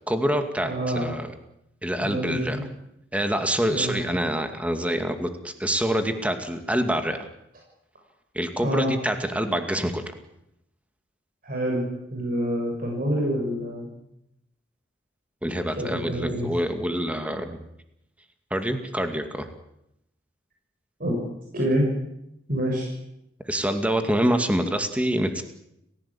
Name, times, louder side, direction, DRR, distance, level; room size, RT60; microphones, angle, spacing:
voice 1, 0.1-1.3 1.8-2.6 3.1-7.3 8.3-10.0 15.4-17.6 18.5-19.5 23.5-25.4, right 1 dB, 5° right, 6 dB, 2.3 m, -26 dB
voice 2, 0.6-1.1 2.0-2.6 3.7-4.0 8.6-8.9 11.4-13.9 15.8-16.5 21.0-21.2 21.5-21.9 22.5-22.9, equal, 50° right, -1 dB, 6.5 m, -27 dB
30.0 x 16.0 x 8.6 m, 0.81 s
head